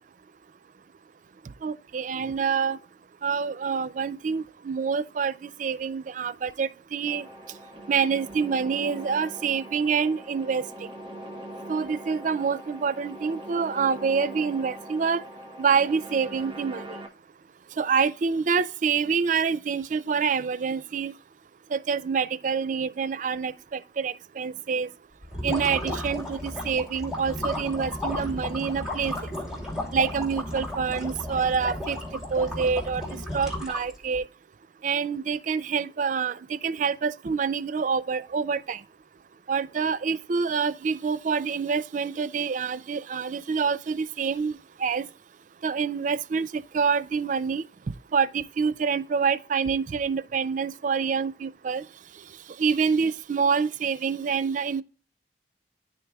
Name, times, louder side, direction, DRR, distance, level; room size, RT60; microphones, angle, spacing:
voice 1, 1.6-2.8 3.2-7.3 7.9-10.6 11.7-15.2 15.6-17.0 17.8-21.1 21.7-24.9 25.4-29.1 29.9-32.0 32.3-33.0 33.3-34.2 34.8-38.8 39.5-45.1 45.6-47.7 48.1-51.8 52.6-54.8, right 6 dB, 45° right, 0.4 m, -26 dB
sound 1, 7.1-17.1, right 1 dB, 30° right, 1.2 m, -42 dB
sound 2, 25.2-34.2, left 1 dB, 5° right, 2.9 m, -33 dB
12.5 x 4.6 x 2.3 m
head